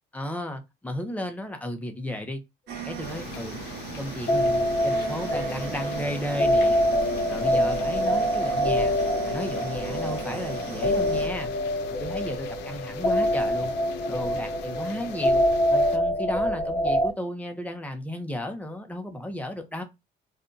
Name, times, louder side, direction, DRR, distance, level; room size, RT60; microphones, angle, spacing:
voice 1, 0.1-2.4 2.8-3.6 4.0-6.9 7.3-11.5 11.9-13.7 14.1-15.4 15.7-19.8, left 1 dB, 10° left, 0.7 m, -34 dB
sound 1, 2.7-11.3, right 6 dB, 75° right, 0.9 m, -39 dB
sound 2, 3.0-16.0, left 7 dB, 85° left, 0.5 m, -42 dB
sound 3, 4.3-17.1, equal, 40° left, 0.9 m, -25 dB
2.6 x 2.2 x 3.8 m
cardioid pair, 110°, 17 cm